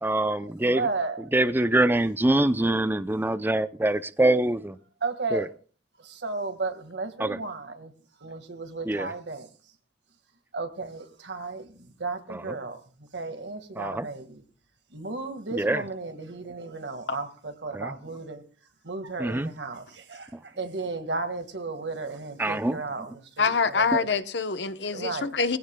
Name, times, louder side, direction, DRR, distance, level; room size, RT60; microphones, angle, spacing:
voice 1, 0.0-0.9 1.3-4.8 5.3-5.4 7.2-7.4 8.9-9.1 13.8-14.1 15.6-15.8 17.7-17.9 19.2-19.5 22.4-22.8, right 1 dB, 10° right, 0.6 m, -24 dB
voice 2, 0.6-1.3 5.0-5.5 6.0-7.9 8.2-9.5 10.5-14.4 14.9-18.4 18.8-24.1 24.9-25.4, right 3 dB, 80° right, 1.8 m, -34 dB
voice 3, 23.4-25.6, left 5 dB, 75° left, 0.9 m, -25 dB
21.0 x 16.0 x 2.3 m
head